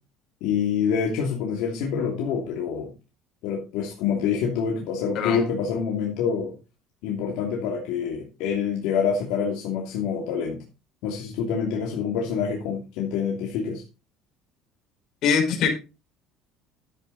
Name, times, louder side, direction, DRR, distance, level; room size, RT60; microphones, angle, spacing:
voice 1, 0.4-2.9 3.4-6.5 7.0-10.6 11.0-13.8, left 6 dB, 75° left, -1 dB, 2.9 m, -26 dB
voice 2, 15.2-15.7, left 6 dB, 55° left, 2 dB, 5.3 m, -22 dB
12.0 x 8.7 x 4.2 m, 0.30 s
cardioid pair, 135°, 0 cm